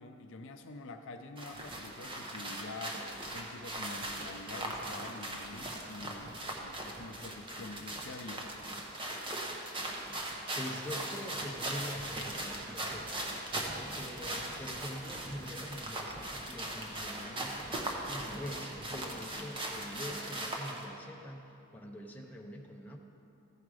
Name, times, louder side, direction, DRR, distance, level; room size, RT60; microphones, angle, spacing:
voice 1, 0.0-3.0 3.3-8.6, left 3 dB, 60° left, 6 dB, 0.5 m, -46 dB
sound 1, 1.4-20.8, right 1 dB, 25° right, 0.9 m, -39 dB
voice 2, 10.6-13.3 13.8-23.0, equal, 10° left, 0 dB, 0.6 m, -44 dB
14.5 x 5.0 x 4.8 m, 2.9 s
head